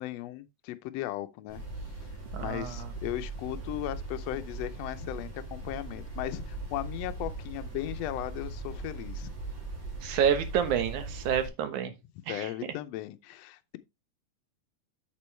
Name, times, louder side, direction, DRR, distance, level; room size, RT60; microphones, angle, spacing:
voice 1, 0.0-1.6 2.4-9.3 12.3-13.8, left 15 dB, 75° left, 1.6 m, -37 dB
sound 1, 1.5-11.5, right 2 dB, 55° right, 4.6 m, -39 dB
voice 2, 2.3-2.9 10.0-11.9 12.3-12.5, right 8 dB, 75° right, 2.6 m, -28 dB
8.6 x 6.9 x 3.2 m
omnidirectional pair, 3.5 m